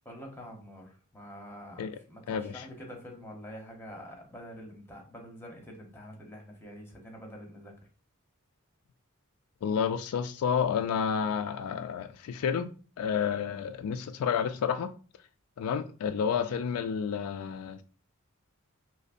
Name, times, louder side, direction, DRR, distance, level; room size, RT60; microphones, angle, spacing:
voice 1, 0.0-7.7, equal, 10° left, 0.8 m, -46 dB
voice 2, 2.3-2.7 9.6-12.7 13.0-14.9 15.6-17.8, left 7 dB, 80° left, 0.3 m, -30 dB
5.1 x 2.0 x 2.5 m
head